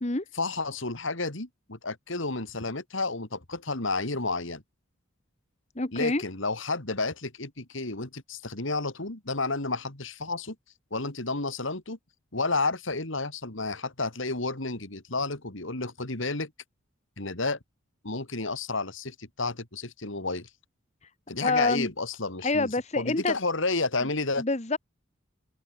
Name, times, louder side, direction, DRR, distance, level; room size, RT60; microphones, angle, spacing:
voice 1, 0.3-4.6 5.9-10.5 10.9-12.0 12.3-16.5 17.2-17.6 18.0-20.5 21.3-22.7 23.0-24.4, left 3 dB, 70° left, 2.9 m, -31 dB
voice 2, 5.8-6.2 21.4-21.9 22.4-23.3 24.4-24.8, left 3 dB, 30° left, 1.2 m, -26 dB
head